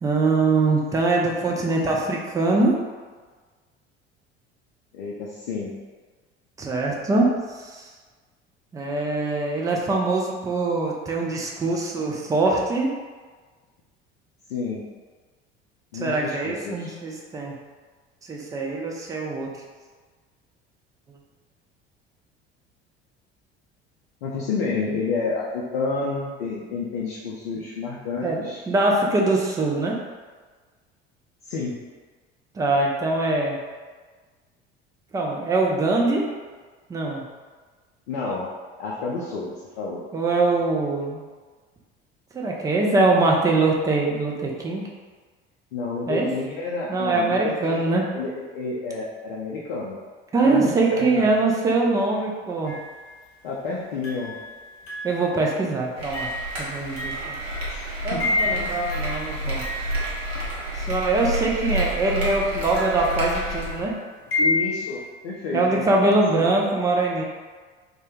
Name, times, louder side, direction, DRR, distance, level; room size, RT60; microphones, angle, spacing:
voice 1, 0.0-2.7 6.6-7.3 7.6-7.9 8.7-12.9 15.9-17.5 18.3-19.5 28.2-30.0 32.6-33.6 35.1-36.3 36.9-37.2 40.1-41.2 42.3-44.9 46.1-46.3 46.9-48.1 50.3-52.8 55.0-56.3 56.6-57.4 58.0-59.6 60.9-63.9 65.5-67.2, right 2 dB, 10° right, -1 dB, 0.3 m, -23 dB
voice 2, 4.9-5.7 14.5-14.8 15.9-16.9 24.2-28.6 31.4-31.7 38.1-38.5 38.8-40.0 45.7-50.0 50.4-51.3 53.4-54.3 57.7-58.7 64.4-65.9 66.3-66.4, left 4 dB, 65° left, -5 dB, 0.5 m, -30 dB
sound 1, 52.7-53.3 54.0-61.0 61.7-65.1, left 2 dB, 40° left, 0.8 m, -31 dB
sound 2, 56.0-63.8, right 1 dB, 70° right, 0.8 m, -30 dB
2.2 x 2.1 x 3.0 m, 1.4 s
figure-of-eight pair, 60°, 32 cm